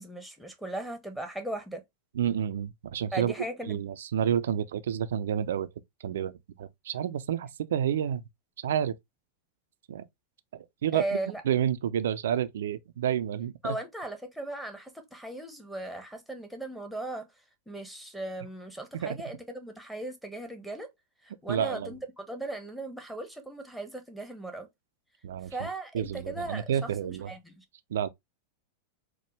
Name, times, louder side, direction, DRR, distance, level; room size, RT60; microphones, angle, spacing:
voice 1, 0.0-1.8 3.1-3.8 10.9-11.4 13.6-17.3 17.7-20.9 21.4-24.7 25.5-26.6 27.0-27.6, right 2 dB, ahead, 1.0 m, -37 dB
voice 2, 2.1-3.3 3.7-5.7 6.0-8.2 8.6-9.0 9.9-10.0 10.5-11.0 11.4-13.8 18.9-19.2 21.5-21.9 25.2-25.7 25.9-27.3 27.9-28.1, right 9 dB, 60° right, 0.4 m, -29 dB
4.5 x 2.1 x 3.2 m
figure-of-eight pair, 90°, 0 cm